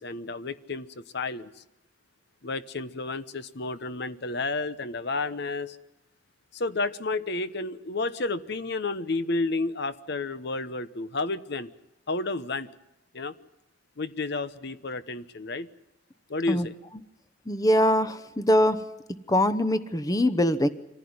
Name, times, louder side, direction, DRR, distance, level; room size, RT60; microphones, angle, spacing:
voice 1, 0.0-1.5 2.4-5.8 6.5-11.7 12.1-12.7 13.1-13.3 14.0-15.7 16.3-16.8, left 3 dB, 60° left, 13 dB, 1.0 m, -31 dB
voice 2, 17.5-18.8 19.3-20.7, left 1 dB, 20° left, 13 dB, 0.9 m, -22 dB
25.5 x 15.5 x 9.5 m, 0.90 s
head